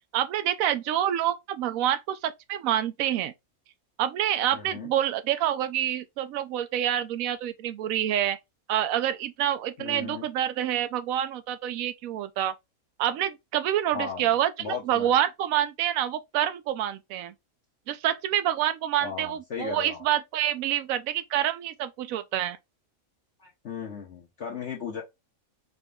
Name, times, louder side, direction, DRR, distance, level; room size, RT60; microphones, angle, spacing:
voice 1, 0.1-3.3 4.0-8.4 8.7-12.5 13.0-17.3 17.9-22.6, right 11 dB, 80° right, 1.0 m, -27 dB
voice 2, 4.5-4.9 9.8-10.3 13.9-14.3 14.6-15.1 19.0-20.1 23.4-25.0, left 6 dB, 55° left, 1.1 m, -36 dB
5.1 x 2.3 x 3.6 m
omnidirectional pair, 1.5 m